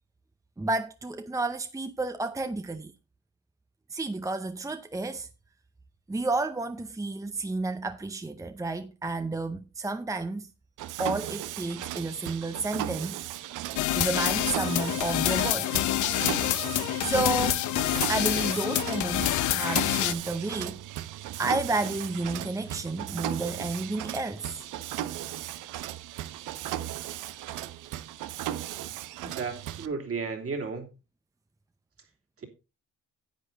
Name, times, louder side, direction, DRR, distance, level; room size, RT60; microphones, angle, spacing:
voice 1, 0.6-2.9 3.9-5.3 6.1-10.5 11.0-13.2 13.9-15.8 17.0-17.6 18.1-20.8 21.4-24.7, right 2 dB, 10° right, 0.7 m, -31 dB
Mechanisms, 10.8-29.9, right 13 dB, 90° right, 0.8 m, -36 dB
sound 1, 13.8-20.1, left 14 dB, 80° left, 0.7 m, -27 dB
voice 2, 29.2-30.9 32.4-32.5, right 4 dB, 50° right, 3.1 m, -34 dB
10.5 x 8.5 x 4.0 m
cardioid pair, 90°, 30 cm